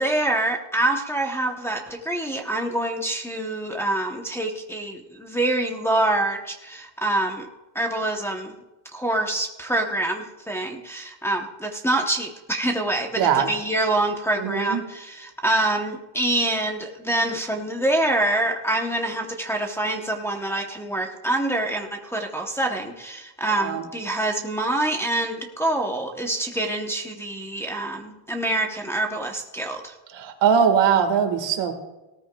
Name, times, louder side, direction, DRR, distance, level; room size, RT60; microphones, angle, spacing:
voice 1, 0.0-7.5 7.7-8.6 8.9-29.9, right 1 dB, 5° left, 0 dB, 0.8 m, -26 dB
voice 2, 13.2-13.5 14.4-14.8 23.6-23.8 30.1-31.7, right 7 dB, 65° right, 6 dB, 1.8 m, -21 dB
18.0 x 13.5 x 2.3 m, 1.0 s
cardioid pair, 165°, 47 cm